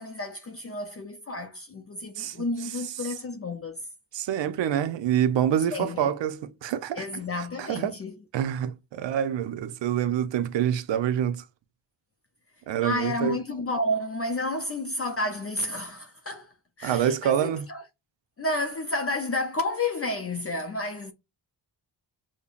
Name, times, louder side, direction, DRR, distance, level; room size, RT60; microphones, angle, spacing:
voice 1, 0.0-3.8 5.7-6.1 6.9-8.2 12.8-16.5 16.8-17.9 18.4-21.1, left 2 dB, 35° left, 0.5 m, -31 dB
voice 2, 4.1-7.0 7.7-7.9 8.3-11.4 12.7-13.4 16.8-17.7, right 9 dB, 75° right, 0.6 m, -26 dB
5.3 x 2.1 x 2.4 m
cardioid pair, 100°, 44 cm